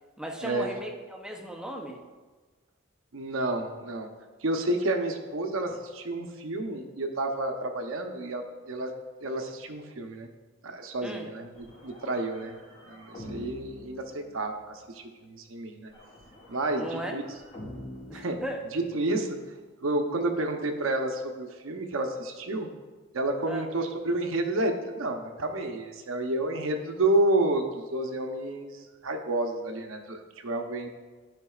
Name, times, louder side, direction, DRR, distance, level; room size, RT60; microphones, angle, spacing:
voice 1, 0.2-2.0 11.0-11.3 16.8-17.2 18.1-18.6 23.5-23.7, right 1 dB, 5° right, 2 dB, 0.6 m, -37 dB
voice 2, 3.1-4.1 4.4-8.9 9.2-10.3 10.6-15.9 16.5-17.2 18.1-18.4 18.7-19.4 19.8-22.7 23.1-30.9, right 2 dB, 85° right, 5 dB, 0.8 m, -30 dB
sound 1, 11.5-14.8 15.9-19.2, left 1 dB, 30° left, 1.8 m, -46 dB
12.0 x 5.1 x 2.4 m, 1.3 s
head